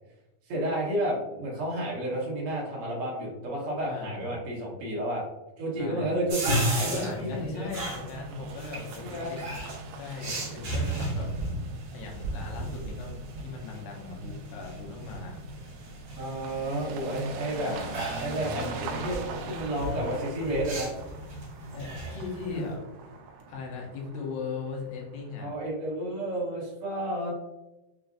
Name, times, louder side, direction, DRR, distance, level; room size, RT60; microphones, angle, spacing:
voice 1, 0.5-5.2 5.6-7.7 9.0-9.3 16.1-17.7 18.2-20.9 25.4-27.3, right 1 dB, 70° right, -5 dB, 1.3 m, -31 dB
voice 2, 3.8-4.4 5.8-6.2 6.8-9.6 10.0-11.3 11.9-15.4 17.6-18.0 18.3-18.7 20.5-20.6 21.7-22.8 23.5-25.5, left 4 dB, 85° left, -1 dB, 2.6 m, -38 dB
sound 1, 6.3-22.7, right 1 dB, 55° right, 1.7 m, -35 dB
sound 2, 8.0-25.6, right 4 dB, 85° right, 1.6 m, -43 dB
6.3 x 2.4 x 2.4 m, 0.98 s
omnidirectional pair, 4.1 m